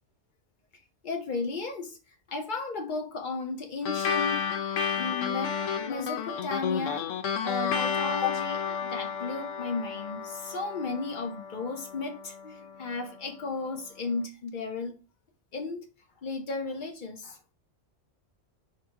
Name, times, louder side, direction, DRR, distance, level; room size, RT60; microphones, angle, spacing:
voice 1, 1.0-2.0 2.3-4.6 5.0-5.5 5.8-7.1 7.4-15.0 15.5-15.8 16.2-17.4, left 4 dB, 45° left, 0.8 m, -34 dB
sound 1, 3.9-12.7, left 7 dB, 80° left, 0.9 m, -32 dB
2.8 x 2.7 x 4.4 m
omnidirectional pair, 1.3 m